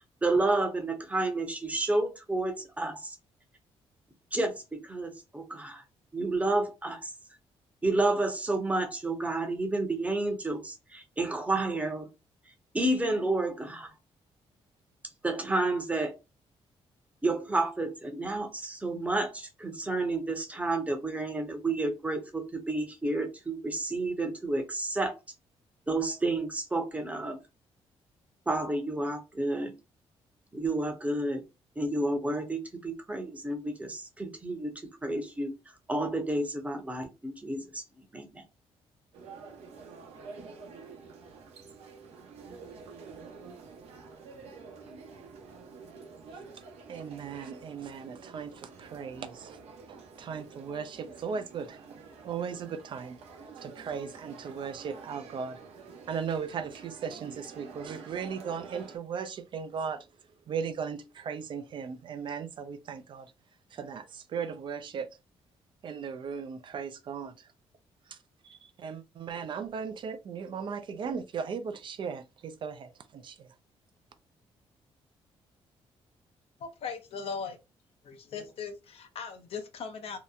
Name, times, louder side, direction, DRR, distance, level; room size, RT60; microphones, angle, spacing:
voice 1, 0.2-3.1 4.3-5.8 6.1-7.1 7.8-12.1 12.7-13.9 15.2-16.1 17.2-25.1 25.9-27.4 28.5-29.7 30.5-31.4 31.8-34.7 35.0-35.5 35.9-37.8 38.1-38.4, right 2 dB, 15° right, 0.7 m, -30 dB
sound 1, 39.1-59.0, right 4 dB, 85° right, 0.7 m, -48 dB
voice 2, 46.9-49.6 49.9-52.0 52.2-53.2 53.6-55.6 56.1-60.1 60.5-63.3 63.7-65.1 65.8-67.5 68.1-68.2 68.4-73.5, right 6 dB, 50° right, 0.3 m, -37 dB
voice 3, 76.6-77.6 78.0-80.2, left 5 dB, 70° left, 0.6 m, -39 dB
2.8 x 2.1 x 2.4 m
cardioid pair, 105°, 11 cm